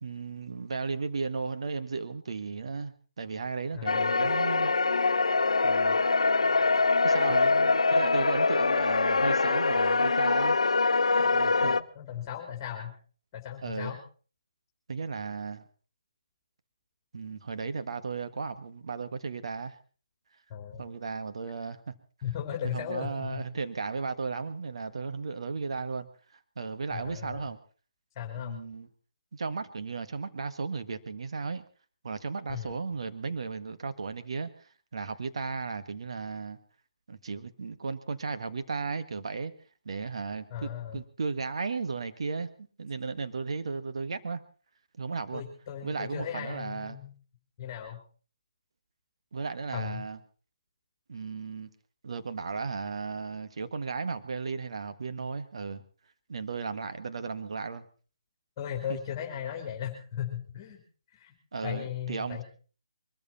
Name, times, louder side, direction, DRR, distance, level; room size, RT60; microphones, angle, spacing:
voice 1, 0.0-4.7 5.6-6.0 7.0-10.5 11.2-11.8 13.6-13.9 14.9-15.6 17.1-19.7 20.8-21.9 22.6-26.1 26.5-27.6 28.4-28.9 29.3-31.6 32.0-36.6 37.1-39.5 39.8-42.5 42.8-44.4 45.0-45.5 45.8-47.0 49.3-50.2 51.1-51.7 52.0-55.8 56.3-57.9 58.9-59.0 61.5-62.4, right 4 dB, 65° right, 10 dB, 1.6 m, -35 dB
voice 2, 3.7-4.3 11.6-12.9 13.3-14.0 20.5-20.9 22.2-23.4 26.9-27.5 28.1-28.6 32.5-32.7 40.5-41.0 45.3-47.1 47.6-48.0 49.7-50.0 58.6-60.8 61.1-61.3 61.6-62.4, left 9 dB, 25° left, 1 dB, 3.3 m, -37 dB
sound 1, 3.9-11.8, left 3 dB, 80° left, 0.8 m, -24 dB
23.0 x 14.0 x 4.3 m, 0.39 s
figure-of-eight pair, 150°, 3 cm